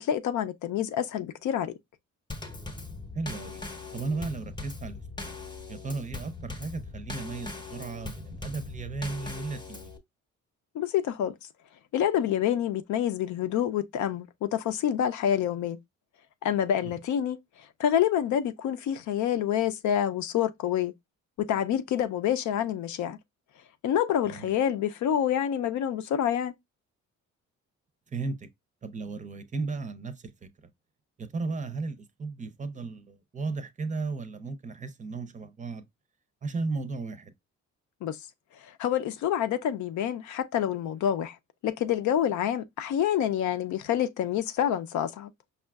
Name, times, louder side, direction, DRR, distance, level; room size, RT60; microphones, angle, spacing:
voice 1, 0.0-1.7 10.7-11.4 11.9-15.8 16.4-17.4 17.8-20.9 21.4-23.2 23.8-26.5 38.0-38.2 38.7-41.4 41.6-45.3, left 10 dB, 70° left, 0.6 m, -27 dB
Drum kit / Snare drum / Bass drum, 2.3-10.0, left 3 dB, 15° left, 0.8 m, -40 dB
voice 2, 3.1-3.6 3.9-5.3 5.7-9.9 16.8-16.9 24.3-24.5 28.1-28.5 28.8-30.2 31.2-35.9 36.4-37.3, right 3 dB, 25° right, 0.6 m, -35 dB
5.4 x 2.4 x 2.3 m
cardioid pair, 90°, 30 cm